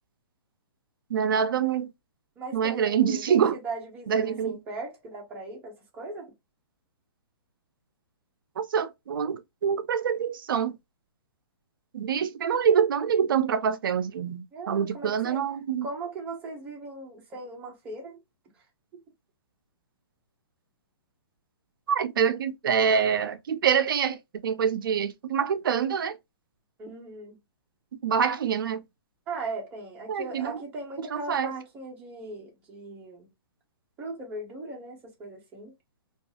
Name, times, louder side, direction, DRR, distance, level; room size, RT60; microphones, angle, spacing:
voice 1, 1.1-1.9 2.5-3.6 4.1-4.6 8.6-10.8 11.9-15.9 21.9-26.2 28.0-28.8 30.1-30.6 31.1-31.5, right 7 dB, 55° right, 0.4 m, -25 dB
voice 2, 2.4-6.3 14.5-15.4 15.8-18.2 18.9-19.0 26.8-27.4 29.3-33.3 34.0-35.7, right 2 dB, 10° right, 0.6 m, -38 dB
2.6 x 2.3 x 2.7 m
hypercardioid pair, 165°, 13 cm